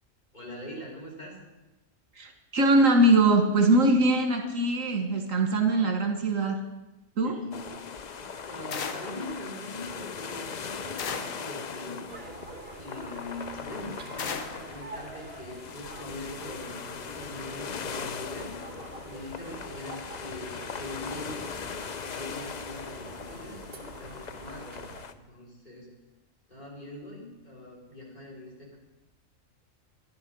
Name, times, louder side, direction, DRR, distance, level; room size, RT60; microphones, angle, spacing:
voice 1, 0.3-1.4 7.2-12.0 12.8-18.5 19.0-21.5 22.1-25.9 26.5-28.8, left 1 dB, 30° left, -4 dB, 4.0 m, -42 dB
voice 2, 2.2-6.6 7.2-7.4, right 2 dB, 75° right, 5 dB, 1.8 m, -22 dB
sound 1, 7.5-25.1, left 6 dB, 50° left, 0.5 m, -40 dB
sound 2, 8.7-9.2 11.0-11.5 14.2-14.7, left 6 dB, 75° left, 1.4 m, -35 dB
sound 3, 12.1-25.1, right 3 dB, 50° right, 1.4 m, -46 dB
11.5 x 11.5 x 6.2 m, 1.0 s
omnidirectional pair, 1.4 m